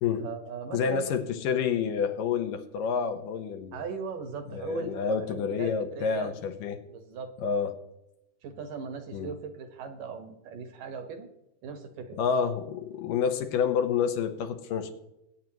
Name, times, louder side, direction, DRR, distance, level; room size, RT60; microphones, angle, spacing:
voice 1, 0.2-1.1 3.7-6.3 6.9-7.6 8.4-11.3 11.6-12.2, right 5 dB, 65° right, 7 dB, 2.6 m, -39 dB
voice 2, 0.7-3.8 4.5-6.8 7.4-7.8 9.1-9.3 12.2-14.9, left 6 dB, 70° left, 8 dB, 2.5 m, -28 dB
22.0 x 9.4 x 3.0 m, 0.87 s
omnidirectional pair, 4.3 m